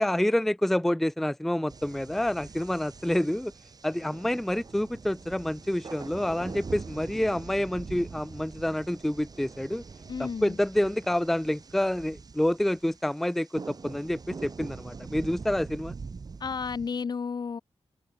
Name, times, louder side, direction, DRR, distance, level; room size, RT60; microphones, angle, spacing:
voice 1, 0.0-3.5 3.8-9.8 10.2-15.9, left 1 dB, 5° left, 0.5 m, -28 dB
sound 1, 1.7-17.0, right 4 dB, 40° right, 3.1 m, -44 dB
voice 2, 10.1-10.6 16.4-17.6, left 5 dB, 45° left, 0.7 m, -32 dB
open air
wide cardioid pair, 175°, 10 cm